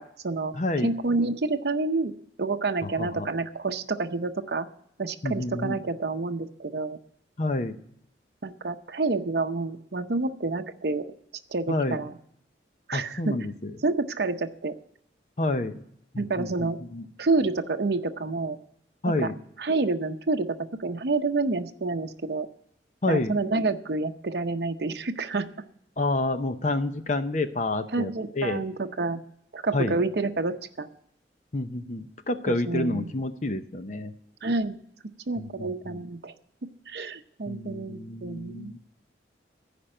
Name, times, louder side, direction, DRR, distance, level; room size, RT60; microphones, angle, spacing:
voice 1, 0.0-0.6 0.8-2.1 2.4-4.7 5.0-7.0 8.4-11.1 11.5-12.1 12.9-13.4 13.8-14.7 16.2-16.8 17.2-18.6 19.2-19.3 19.6-22.5 23.1-25.5 27.9-29.2 29.5-30.9 32.5-33.1 34.4-34.8 35.3-36.3 36.9-38.8, right 3 dB, 60° right, 6 dB, 0.7 m, -28 dB
voice 2, 0.5-0.9 2.8-3.3 5.2-5.8 7.4-7.8 11.7-12.0 12.9-13.7 15.4-15.8 16.1-17.1 19.0-19.3 23.0-23.3 26.0-28.1 28.4-28.6 29.7-30.0 31.5-34.1 35.4-36.0 37.5-38.8, left 2 dB, 40° left, 9 dB, 0.7 m, -29 dB
14.5 x 5.2 x 8.8 m, 0.72 s
head